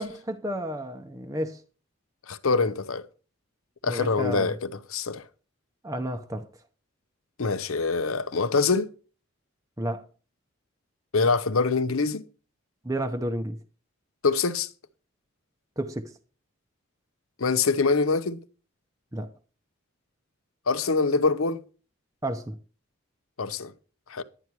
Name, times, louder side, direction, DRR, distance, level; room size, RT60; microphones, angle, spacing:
voice 1, 0.0-1.6 3.9-4.5 5.8-6.5 9.8-10.1 12.8-13.6 15.8-16.1 19.1-19.3 22.2-22.6, right 1 dB, 15° right, 0.7 m, -31 dB
voice 2, 2.3-3.0 3.8-5.2 7.4-8.9 11.1-12.2 14.2-14.7 17.4-18.4 20.7-21.6 23.4-23.7 24.1-24.2, left 4 dB, 90° left, 0.8 m, -24 dB
11.0 x 9.9 x 4.6 m
head